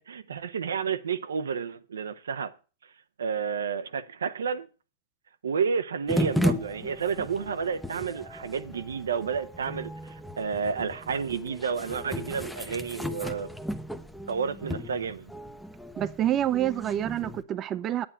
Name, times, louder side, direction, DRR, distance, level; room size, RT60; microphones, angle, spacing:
voice 1, 0.0-2.5 3.2-4.7 5.4-13.5 14.3-15.3, right 6 dB, 80° right, 0.8 m, -31 dB
sound 1, 6.1-17.4, equal, ahead, 0.8 m, -35 dB
voice 2, 16.0-18.1, right 11 dB, 30° right, 0.6 m, -27 dB
9.7 x 8.8 x 5.7 m
hypercardioid pair, 110°, 0 cm